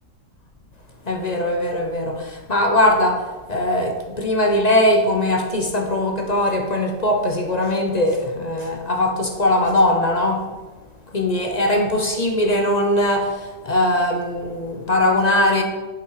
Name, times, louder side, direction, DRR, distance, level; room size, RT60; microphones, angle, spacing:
voice 1, 1.1-3.2 3.5-10.4 11.1-13.4 13.6-15.6, left 1 dB, 35° left, 3 dB, 0.7 m, -20 dB
10.5 x 5.9 x 4.8 m, 1.2 s
omnidirectional pair, 2.0 m